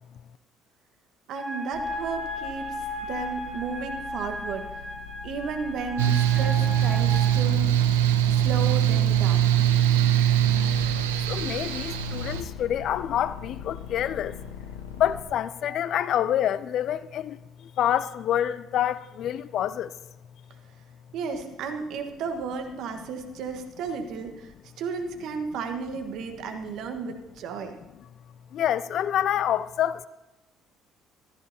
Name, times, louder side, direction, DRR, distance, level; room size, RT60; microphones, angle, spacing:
sound 1, 1.3-7.2, left 1 dB, 20° right, 4.4 m, -35 dB
voice 1, 1.3-2.7 3.1-4.7 5.2-7.7 8.3-9.6 21.1-24.5 24.8-27.8, right 5 dB, 65° right, 1.4 m, -33 dB
sound 2, 1.7-15.2, left 8 dB, 80° left, 1.2 m, -42 dB
Mechanical fan, 6.0-12.4, right 10 dB, 80° right, 0.7 m, -22 dB
voice 2, 11.3-14.4 15.0-19.9 28.0-28.1 28.5-30.1, left 10 dB, 60° left, 0.4 m, -27 dB
15.5 x 13.5 x 2.8 m
hypercardioid pair, 55°, 0 cm